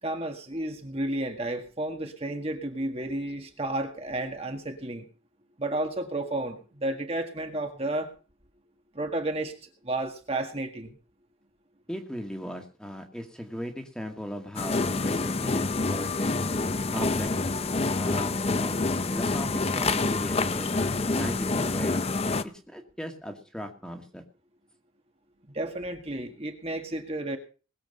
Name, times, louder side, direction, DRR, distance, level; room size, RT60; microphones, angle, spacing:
voice 1, 0.0-5.1 5.6-8.1 8.9-11.0 25.5-27.4, right 1 dB, 30° right, 4 dB, 1.7 m, -32 dB
voice 2, 11.9-16.3 16.9-17.3 18.0-22.0 22.7-24.2, equal, 5° left, 4 dB, 1.9 m, -38 dB
sound 1, 14.6-22.4, left 3 dB, 30° left, 0.6 m, -27 dB
20.5 x 7.8 x 5.4 m, 0.37 s
head